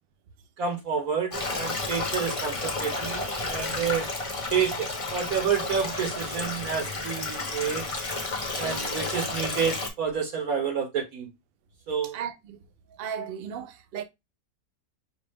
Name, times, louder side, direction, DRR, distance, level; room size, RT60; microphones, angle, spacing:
voice 1, 0.6-4.1 4.5-7.8 8.6-11.3 11.9-12.2, right 7 dB, 60° right, 1.3 m, -29 dB
Stream, 1.3-9.9, left 3 dB, 25° left, 0.7 m, -32 dB
voice 2, 8.5-8.9 12.1-12.6 13.0-14.0, right 8 dB, 80° right, 0.5 m, -36 dB
5.3 x 2.4 x 3.4 m
omnidirectional pair, 1.8 m